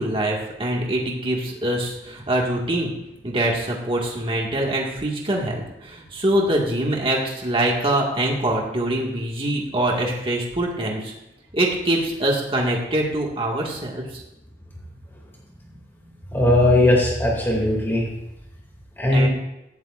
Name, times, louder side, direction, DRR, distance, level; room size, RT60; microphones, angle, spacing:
voice 1, 0.0-2.9 3.2-11.1 11.5-14.2 19.1-19.3, right 1 dB, 30° right, -2 dB, 1.9 m, -24 dB
voice 2, 16.3-18.1 19.0-19.3, left 1 dB, 15° left, -3 dB, 2.5 m, -18 dB
17.0 x 12.5 x 2.5 m, 0.89 s
head